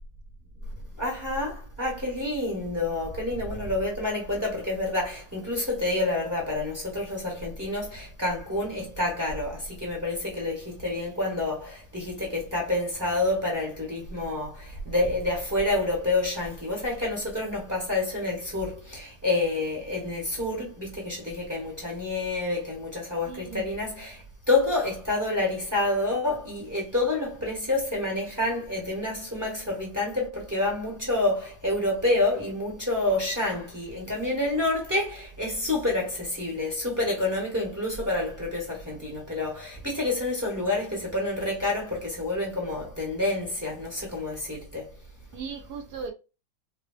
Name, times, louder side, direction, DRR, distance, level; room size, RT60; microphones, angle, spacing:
voice 1, 1.0-44.9, left 2 dB, 10° right, 0.9 m, -28 dB
voice 2, 23.2-23.7 45.3-46.1, right 5 dB, 70° right, 0.9 m, -37 dB
5.0 x 2.2 x 2.3 m
omnidirectional pair, 2.2 m